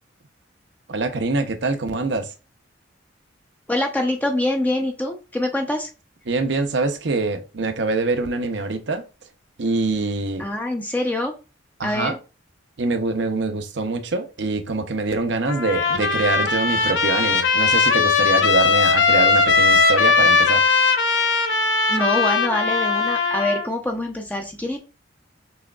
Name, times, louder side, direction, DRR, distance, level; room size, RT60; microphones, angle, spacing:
voice 1, 0.9-2.3 6.3-9.0 9.6-10.5 11.8-12.2 12.8-20.6, right 3 dB, 65° right, 0.7 m, -24 dB
voice 2, 3.7-5.9 10.4-11.3 11.8-12.2 21.9-24.8, left 1 dB, 10° left, 0.5 m, -24 dB
Trumpet, 15.5-23.7, left 4 dB, 75° left, 0.7 m, -19 dB
6.2 x 3.4 x 2.3 m
head